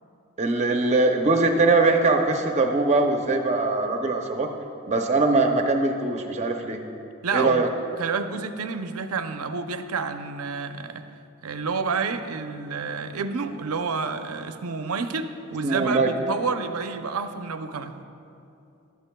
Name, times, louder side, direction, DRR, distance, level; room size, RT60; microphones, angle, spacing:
voice 1, 0.4-4.5 4.9-6.8 7.3-7.7 15.6-16.1, right 3 dB, 30° right, 3 dB, 0.6 m, -21 dB
voice 2, 7.2-7.7 8.0-11.1 11.4-18.0, right 4 dB, 80° right, 8 dB, 0.6 m, -29 dB
16.0 x 12.5 x 2.3 m, 2.7 s
head